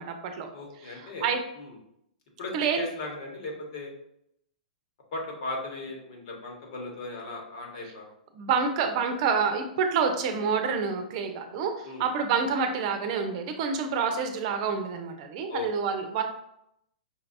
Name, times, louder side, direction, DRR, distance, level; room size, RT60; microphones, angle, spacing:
voice 1, 0.0-0.5 0.8-1.4 2.5-2.8 8.3-16.2, right 6 dB, 50° right, 6 dB, 0.7 m, -28 dB
voice 2, 0.5-1.3 1.6-1.7 2.4-3.9 5.1-8.1 11.8-12.1 15.5-15.7, left 2 dB, 60° left, 0 dB, 1.5 m, -37 dB
5.5 x 3.2 x 2.6 m, 0.77 s
hypercardioid pair, 125°, 5 cm